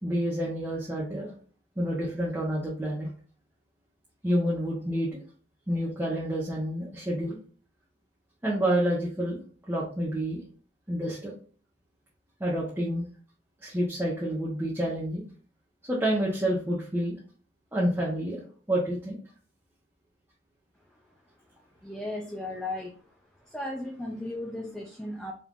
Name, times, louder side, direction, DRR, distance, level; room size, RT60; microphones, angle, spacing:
voice 1, 0.0-1.3 1.8-3.1 4.2-5.2 5.7-7.4 8.4-9.4 9.7-10.4 10.9-11.3 12.4-13.1 13.6-15.2 15.9-17.1 17.7-18.4 18.7-19.2, equal, 15° right, -6 dB, 0.9 m, -28 dB
voice 2, 21.8-22.9 23.5-25.3, left 1 dB, 5° left, -1 dB, 0.5 m, -35 dB
4.3 x 3.6 x 2.5 m, 0.41 s
head